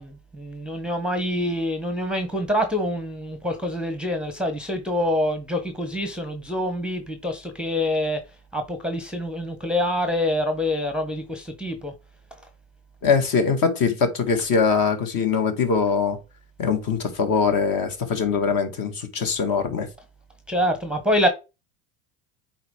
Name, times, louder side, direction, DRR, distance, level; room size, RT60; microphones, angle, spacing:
voice 1, 0.0-8.2 8.5-11.9 20.5-21.3, left 1 dB, ahead, 0.9 m, -26 dB
voice 2, 13.0-16.2 16.6-19.9, left 5 dB, 45° left, 2.0 m, -22 dB
7.9 x 4.4 x 3.7 m
supercardioid pair, 105°, 45 cm